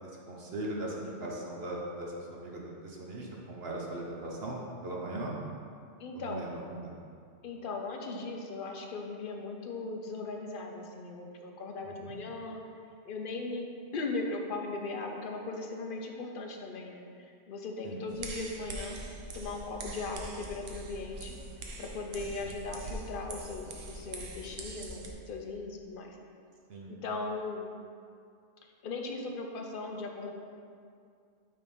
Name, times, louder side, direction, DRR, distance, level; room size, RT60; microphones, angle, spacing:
voice 1, 0.0-5.3 6.1-6.9 11.8-12.2 17.8-18.0 22.4-22.5 26.7-26.9, right 1 dB, 55° right, -2 dB, 1.1 m, -39 dB
voice 2, 6.0-6.4 7.4-12.6 13.0-19.0 19.3-21.4 21.8-26.2 26.9-27.7 28.6-30.3, left 3 dB, 50° left, 2 dB, 0.8 m, -38 dB
sound 1, 18.1-25.1, right 2 dB, 85° right, 1.1 m, -43 dB
6.7 x 3.8 x 5.3 m, 2.3 s
omnidirectional pair, 1.3 m